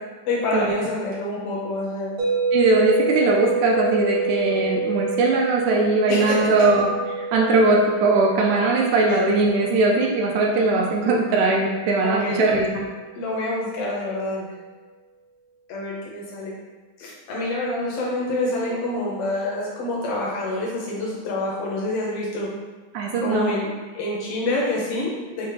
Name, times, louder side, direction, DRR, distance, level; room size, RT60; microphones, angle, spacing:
voice 1, 0.3-2.1 6.1-6.7 9.1-9.2 12.0-12.6 13.1-14.5 15.7-16.5 17.0-22.5 23.2-23.7 23.9-25.5, left 2 dB, 85° left, -4 dB, 1.3 m, -27 dB
sound 1, 2.2-12.3, right 4 dB, 65° right, 1.4 m, -28 dB
voice 2, 2.5-12.8 22.9-23.5, right 2 dB, 80° right, 0 dB, 1.9 m, -20 dB
6.0 x 2.1 x 3.2 m, 1.3 s
omnidirectional pair, 3.5 m